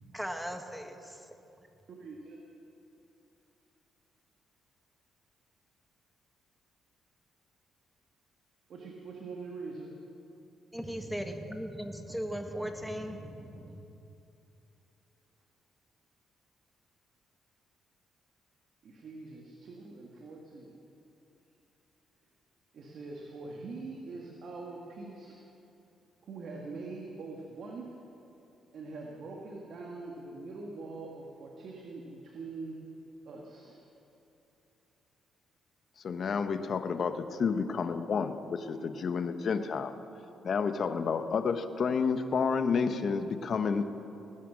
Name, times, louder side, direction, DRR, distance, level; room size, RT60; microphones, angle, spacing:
voice 1, 0.1-1.3 10.7-13.8, equal, ahead, 5 dB, 1.5 m, -38 dB
voice 2, 2.0-2.4 8.7-9.9 18.8-20.9 22.7-25.4 26.2-27.9 28.7-32.8 33.2-33.9, right 3 dB, 60° right, -1 dB, 1.8 m, -43 dB
voice 3, 36.0-39.9 40.4-43.9, left 5 dB, 55° left, 9 dB, 0.9 m, -30 dB
19.0 x 10.0 x 6.3 m, 2.8 s
cardioid pair, 90°, 0 cm